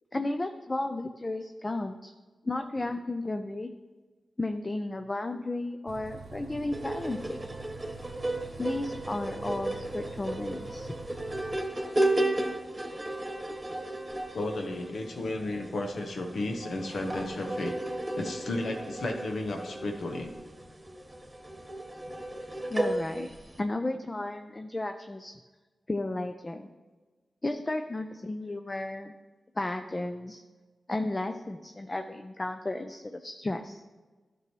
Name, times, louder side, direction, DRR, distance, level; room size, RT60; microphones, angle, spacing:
voice 1, 0.1-2.1 2.5-3.7 4.4-7.4 8.6-10.9 22.7-23.3 23.6-25.3 25.9-26.7 27.4-29.1 29.6-30.4 30.9-33.8, left 2 dB, 35° left, 6 dB, 0.5 m, -33 dB
Bus, 5.9-11.6, right 4 dB, 85° right, 0.7 m, -45 dB
sound 1, 6.7-23.6, right 1 dB, 25° right, 1.4 m, -34 dB
voice 2, 14.3-17.8 18.1-20.3, left 2 dB, 75° left, 3 dB, 1.0 m, -33 dB
12.0 x 6.1 x 3.1 m, 1.3 s
cardioid pair, 40°, 0 cm